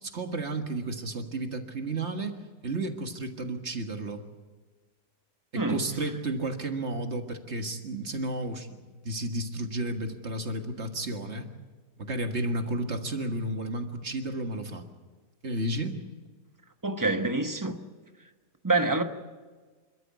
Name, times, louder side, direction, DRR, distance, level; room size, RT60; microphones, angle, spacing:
voice 1, 0.0-4.2 5.7-8.8 9.0-11.5 12.0-14.9 15.4-16.0, right 2 dB, 45° right, 1.9 m, -32 dB
voice 2, 16.8-17.8 18.6-19.0, right 2 dB, 15° right, 1.1 m, -26 dB
28.0 x 13.0 x 8.5 m
omnidirectional pair, 1.7 m